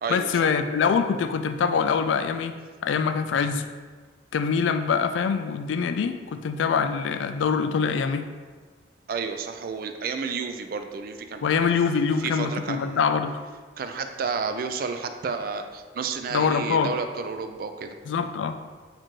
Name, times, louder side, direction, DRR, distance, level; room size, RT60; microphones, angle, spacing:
voice 1, 0.1-2.6 2.8-3.7 4.3-8.3 11.4-13.4 16.3-16.9 18.1-18.6, left 6 dB, 85° left, 8 dB, 0.3 m, -24 dB
voice 2, 9.1-11.7 12.2-13.1 13.8-18.0, right 5 dB, 50° right, 7 dB, 0.3 m, -31 dB
4.4 x 2.5 x 4.4 m, 1.4 s
head